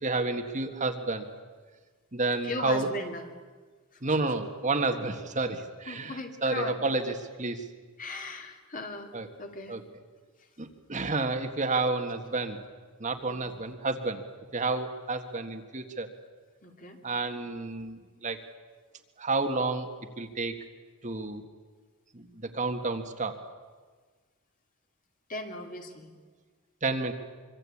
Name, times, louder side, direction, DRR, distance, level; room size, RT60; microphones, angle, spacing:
voice 1, 0.0-1.3 2.1-2.9 4.0-6.1 6.4-7.6 9.1-9.3 9.7-9.8 10.6-12.6 13.0-14.2 14.5-16.1 17.0-18.4 19.2-19.9 20.2-20.5 21.0-21.4 22.1-23.4 26.8-27.1, right 3 dB, 35° right, 6 dB, 1.6 m, -30 dB
voice 2, 2.4-3.3 3.9-4.2 5.9-6.8 8.0-9.8 10.4-10.5 13.3-13.5 16.6-17.0 25.3-26.1, left 2 dB, 40° left, 4 dB, 2.7 m, -38 dB
25.0 x 24.0 x 8.6 m, 1.4 s
head